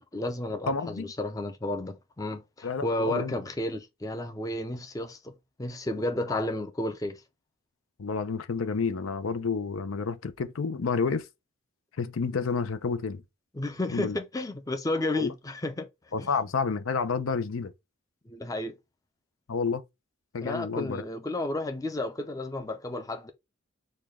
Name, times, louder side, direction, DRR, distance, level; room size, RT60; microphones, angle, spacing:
voice 1, 0.1-5.3 5.6-7.2 13.5-16.3 18.3-18.7 20.4-23.3, left 1 dB, 15° left, 0.5 m, -32 dB
voice 2, 0.7-1.1 2.6-3.3 8.0-11.3 12.0-13.2 13.9-14.2 15.1-15.3 16.1-17.7 19.5-19.8 20.3-21.0, left 5 dB, 85° left, 0.6 m, -30 dB
6.5 x 2.3 x 3.5 m
head